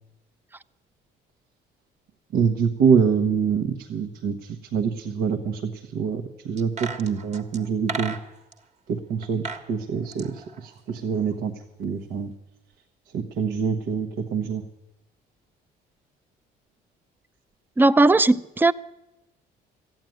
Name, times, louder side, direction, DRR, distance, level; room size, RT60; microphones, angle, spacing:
voice 1, 2.3-8.2 8.9-9.4 9.7-11.5 11.8-12.3 13.1-14.6, right 6 dB, 80° right, 1.2 m, -25 dB
sound 1, 6.6-8.6 9.2-9.7 10.0-11.3 11.6-11.7, right 4 dB, 40° right, 1.4 m, -35 dB
voice 2, 17.8-18.7, right 2 dB, 10° right, 0.4 m, -17 dB
14.0 x 9.1 x 9.2 m
cardioid pair, 110°, 17 cm